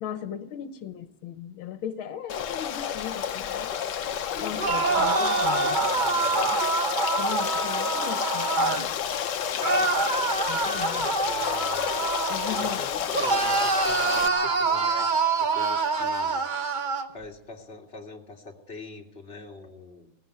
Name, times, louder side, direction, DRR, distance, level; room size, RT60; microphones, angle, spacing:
voice 1, 0.0-3.7 4.4-5.8 6.5-6.6 7.2-8.9 10.5-11.1 12.3-12.8, left 10 dB, 80° left, 10 dB, 1.8 m, -37 dB
Stream, 2.3-14.3, left 9 dB, 65° left, 1.4 m, -30 dB
voice 2, 4.3-6.5 10.6-16.4 17.1-20.1, left 3 dB, 30° left, 0 dB, 2.5 m, -43 dB
sound 1, 4.5-8.9 9.6-12.8 13.1-17.1, right 4 dB, 35° right, 0.8 m, -26 dB
17.5 x 17.0 x 9.4 m, 0.86 s
omnidirectional pair, 2.2 m